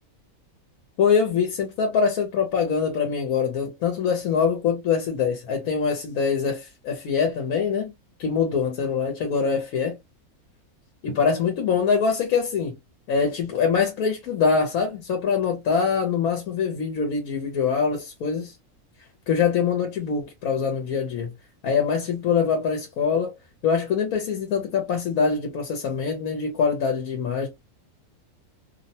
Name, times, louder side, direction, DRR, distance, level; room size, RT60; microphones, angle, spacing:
voice 1, 1.0-7.9 8.2-10.0 11.0-12.8 13.1-18.5 19.3-21.3 21.6-23.3 23.6-27.5, left 6 dB, 75° left, 1.1 m, -24 dB
2.7 x 2.1 x 2.7 m
omnidirectional pair, 1.6 m